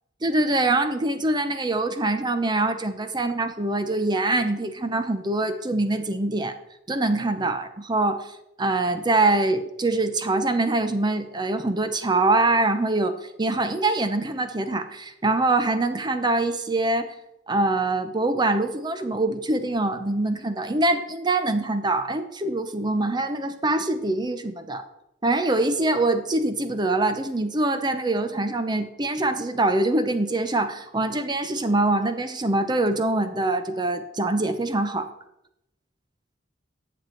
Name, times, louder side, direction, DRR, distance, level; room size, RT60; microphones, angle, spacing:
voice 1, 0.2-6.6 6.9-8.3 8.6-13.1 13.4-17.1 17.5-24.8 25.2-35.1, right 2 dB, 20° right, 9 dB, 0.7 m, -24 dB
10.5 x 7.3 x 4.5 m, 0.84 s
head